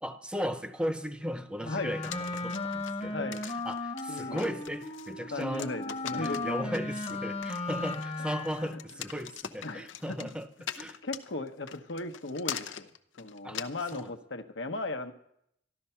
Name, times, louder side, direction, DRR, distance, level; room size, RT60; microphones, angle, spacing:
voice 1, 0.0-3.3 3.6-5.7 6.1-11.0 13.4-13.6 13.9-14.1, equal, 5° right, 9 dB, 0.8 m, -36 dB
Wind instrument woodwind instrument, 1.6-8.9, left 2 dB, 30° left, 1.1 m, -36 dB
sound 1, 2.0-14.1, left 9 dB, 90° left, 0.8 m, -42 dB
voice 2, 3.1-3.4 4.1-4.6 5.3-6.7 8.6-8.8 9.6-10.3 11.0-12.9 13.2-15.1, left 2 dB, 75° left, 6 dB, 1.1 m, -37 dB
14.0 x 12.0 x 5.7 m, 0.73 s
head